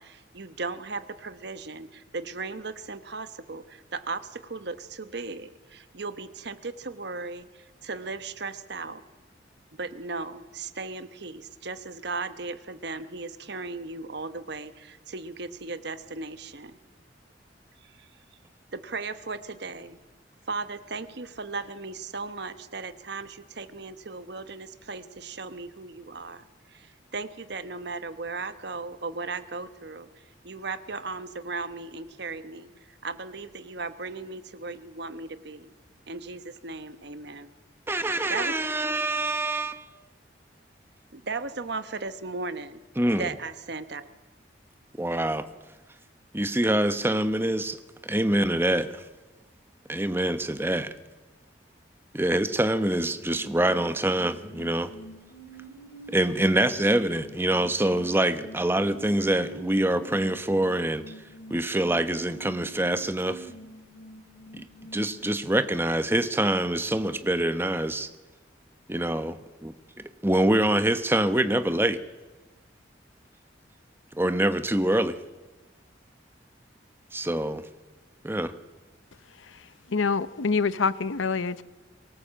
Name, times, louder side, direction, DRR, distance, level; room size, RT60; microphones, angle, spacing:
voice 1, 0.0-9.0 9.7-16.8 18.0-18.1 18.7-20.0 20.5-30.1 30.4-32.7 33.0-35.7 36.1-37.5 38.3-38.6 41.1-42.8 43.2-44.1, right 3 dB, 60° right, 12 dB, 1.0 m, -36 dB
voice 2, 37.9-39.8 43.0-43.3 45.0-45.5 46.3-47.8 48.0-49.0 49.9-50.9 52.1-54.9 56.1-61.0 61.5-63.5 64.5-64.6 64.9-68.1 68.9-69.4 69.6-69.7 70.2-72.0 74.1-75.2 77.1-77.6 78.2-78.5, right 1 dB, 10° right, 11 dB, 0.9 m, -25 dB
sound 1, 54.9-65.4, right 2 dB, 55° left, 3.1 m, -47 dB
voice 3, 79.4-81.6, left 4 dB, 90° left, 16 dB, 0.7 m, -27 dB
23.5 x 17.5 x 7.5 m, 1.2 s
head